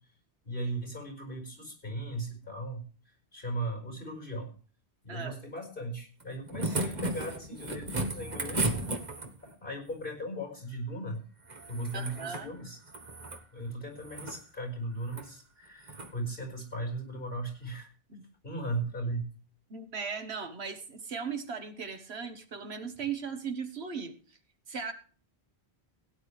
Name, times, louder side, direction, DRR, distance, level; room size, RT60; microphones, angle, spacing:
voice 1, 0.4-2.8 3.3-4.5 5.0-9.0 9.6-11.2 11.7-12.8 13.5-17.9 18.4-19.2, right 1 dB, 55° left, 3 dB, 5.1 m, -37 dB
voice 2, 5.1-5.4 11.9-12.5 18.1-18.2 19.7-24.1 24.7-24.9, right 6 dB, 85° right, 7 dB, 1.5 m, -37 dB
sound 1, 6.2-9.5 11.4-12.5 12.8-13.4 14.0-14.4 15.0-15.3 15.8-16.1 17.5-17.6, right 2 dB, 45° right, 1.4 m, -35 dB
17.0 x 10.0 x 3.3 m, 0.40 s
omnidirectional pair, 1.1 m